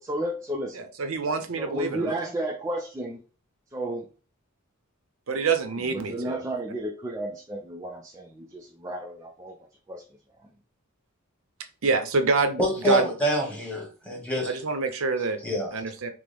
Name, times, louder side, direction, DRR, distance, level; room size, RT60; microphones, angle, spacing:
voice 1, 0.0-0.9 1.6-3.2 3.7-4.1 5.8-9.6 9.9-10.0, right 1 dB, 15° right, 0 dB, 0.4 m, -33 dB
voice 2, 1.0-2.2 5.3-6.4 11.8-13.1 14.4-15.4 15.7-16.1, right 4 dB, 70° right, 8 dB, 0.7 m, -26 dB
voice 3, 12.6-14.5 15.4-15.7, right 1 dB, 5° left, -1 dB, 1.2 m, -26 dB
6.0 x 2.1 x 3.4 m, 0.36 s
head